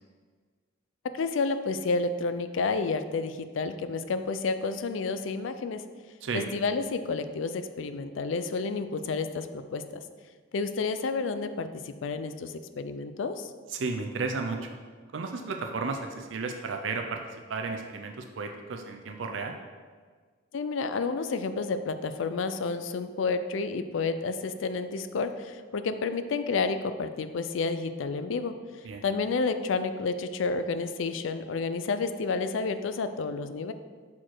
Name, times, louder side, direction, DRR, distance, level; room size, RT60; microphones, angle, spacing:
voice 1, 1.1-5.8 6.3-10.0 10.5-13.5 20.5-28.5 29.0-33.7, left 4 dB, 80° left, 10 dB, 0.4 m, -30 dB
voice 2, 13.7-14.7 15.1-17.2 17.5-19.5 28.8-29.0, right 4 dB, 75° right, 4 dB, 0.5 m, -33 dB
5.9 x 4.4 x 4.6 m, 1.6 s
head